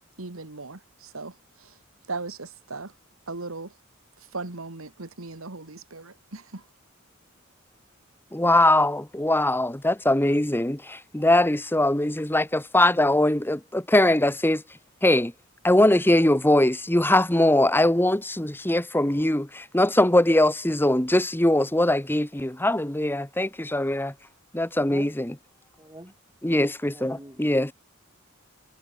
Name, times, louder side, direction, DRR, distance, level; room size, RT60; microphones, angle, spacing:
voice 1, 0.2-1.3 2.1-2.9 3.3-3.7 4.3-6.6, right 3 dB, 75° right, 1.9 m, -37 dB
voice 2, 8.3-14.6 15.0-15.3 15.6-24.1 24.5-25.3 26.4-27.7, left 1 dB, 10° left, 1.4 m, -21 dB
voice 3, 24.7-25.2 25.8-26.1 26.8-27.4, right 1 dB, 15° right, 5.2 m, -44 dB
head